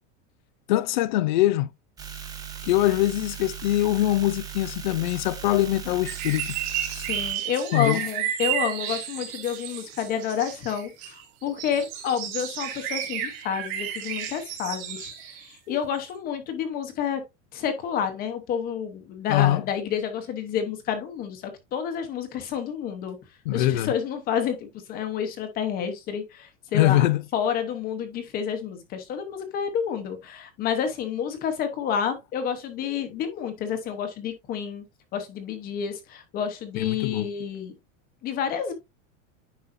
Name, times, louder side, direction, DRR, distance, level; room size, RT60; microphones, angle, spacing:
voice 1, 0.7-1.7 2.6-6.6 7.7-8.0 19.3-19.6 23.5-23.9 26.7-27.2 36.8-37.3, left 15 dB, 40° left, 0.4 m, -23 dB
sound 1, 2.0-7.4, right 8 dB, 10° right, 0.6 m, -38 dB
sound 2, 6.0-15.5 16.1-16.2, right 10 dB, 45° right, 2.0 m, -32 dB
voice 2, 7.1-17.2 17.5-23.2 23.5-27.1 27.3-34.8 35.1-37.7 38.2-38.7, left 8 dB, 20° left, 0.9 m, -29 dB
9.7 x 5.4 x 2.6 m
supercardioid pair, 175°, 40 cm